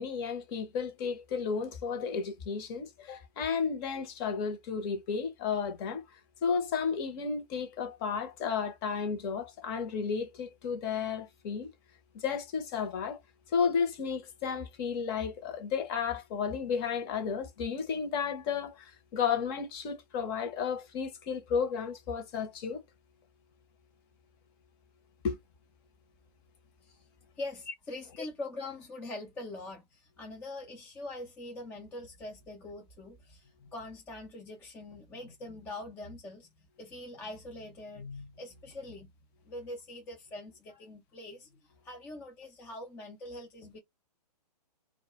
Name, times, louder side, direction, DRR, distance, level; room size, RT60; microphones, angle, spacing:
voice 1, 0.0-11.7 12.1-13.2 13.5-22.8 25.2-25.4, left 6 dB, 35° left, 0.8 m, -33 dB
voice 2, 27.4-39.1 39.5-43.8, left 2 dB, 10° left, 0.4 m, -43 dB
2.3 x 2.1 x 2.8 m
hypercardioid pair, 130°, 21 cm